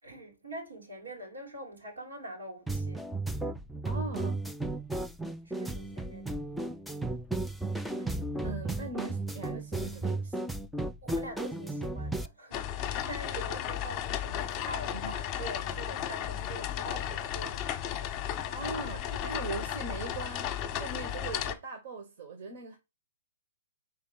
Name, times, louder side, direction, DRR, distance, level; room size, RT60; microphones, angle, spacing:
voice 1, 0.0-3.1 5.4-6.4 11.0-18.3, right 1 dB, 85° right, 3.4 m, -44 dB
sound 1, 2.7-12.3, right 2 dB, ahead, 0.4 m, -34 dB
voice 2, 3.9-4.4 8.0-8.1 8.4-10.5 14.9-15.1 18.5-22.8, right 3 dB, 55° right, 1.7 m, -40 dB
sound 2, 12.5-21.5, left 10 dB, 25° left, 1.0 m, -34 dB
4.7 x 4.4 x 5.8 m
hypercardioid pair, 130°, 0 cm